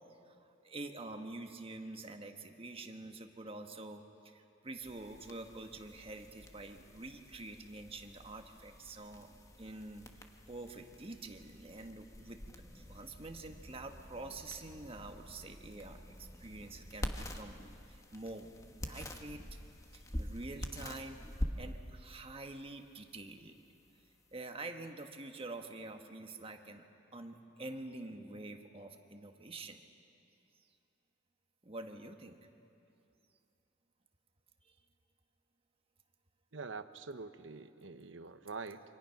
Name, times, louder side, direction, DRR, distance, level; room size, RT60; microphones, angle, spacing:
voice 1, 0.6-9.3 9.6-10.1 10.5-17.6 17.9-19.4 19.9-21.2 21.6-23.7 24.3-26.8 27.1-29.8 31.6-32.4 34.6-34.7, right 2 dB, 30° right, 5 dB, 1.5 m, -47 dB
sound 1, 4.8-24.4, equal, 15° left, 1.3 m, -46 dB
voice 2, 36.5-38.8, right 4 dB, 75° right, 10 dB, 0.9 m, -45 dB
27.5 x 25.0 x 5.9 m, 2.6 s
head